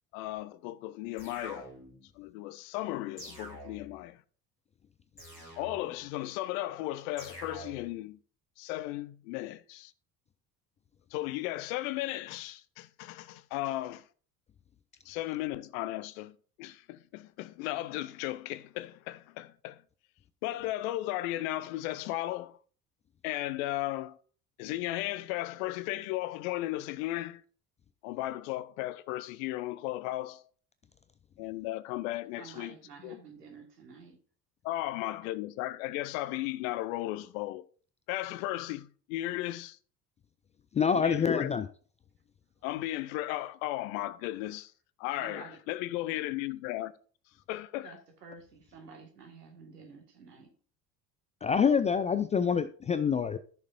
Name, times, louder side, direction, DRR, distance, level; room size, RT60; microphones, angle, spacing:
voice 1, 0.1-1.7 2.2-4.2 5.6-8.2 8.6-9.9 11.1-14.1 15.0-19.8 20.4-22.6 23.2-24.2 24.6-27.4 28.0-30.5 31.4-32.7 33.0-33.2 34.6-37.7 38.1-39.8 40.9-41.7 42.6-44.7 45.0-46.9 47.5-47.9, left 16 dB, 60° left, 0.7 m, -35 dB
sound 1, 1.2-2.1 3.2-4.1 5.2-6.1 7.2-8.1, equal, 90° left, 2.8 m, -47 dB
voice 2, 32.4-34.2 45.2-45.6 47.8-50.5, right 4 dB, 80° right, 2.1 m, -50 dB
voice 3, 40.7-41.6 51.4-53.4, left 6 dB, 15° left, 0.3 m, -26 dB
14.0 x 6.6 x 2.7 m
figure-of-eight pair, 60°, 47 cm